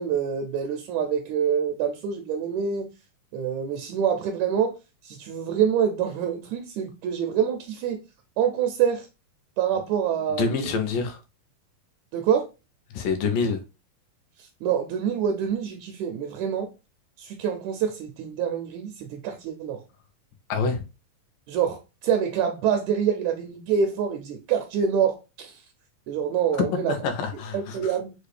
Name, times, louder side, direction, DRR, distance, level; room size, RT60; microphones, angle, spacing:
voice 1, 0.0-2.9 3.3-8.0 8.4-9.1 9.6-10.7 12.1-12.5 14.4-16.7 17.2-19.8 21.5-25.6 26.1-27.0 27.5-28.1, right 8 dB, 85° right, 1.6 m, -26 dB
voice 2, 10.4-11.2 12.9-13.6 20.5-20.8 26.7-27.9, left 5 dB, 80° left, 2.3 m, -26 dB
6.5 x 2.4 x 3.2 m
omnidirectional pair, 3.9 m